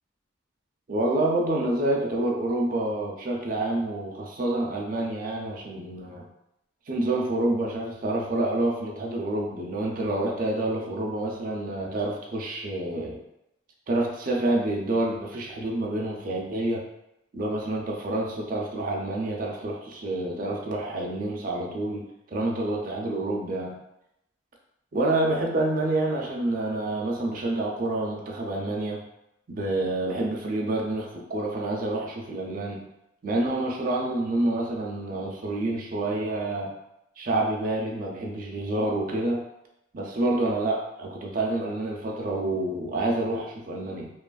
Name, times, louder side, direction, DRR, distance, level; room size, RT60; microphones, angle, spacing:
voice 1, 0.9-6.3 6.9-13.2 13.9-16.8 17.3-23.8 24.9-29.0 29.5-32.8 33.2-36.7 37.2-39.4 39.9-44.1, right 2 dB, 45° right, -1 dB, 0.4 m, -28 dB
2.8 x 2.4 x 2.3 m, 0.85 s
head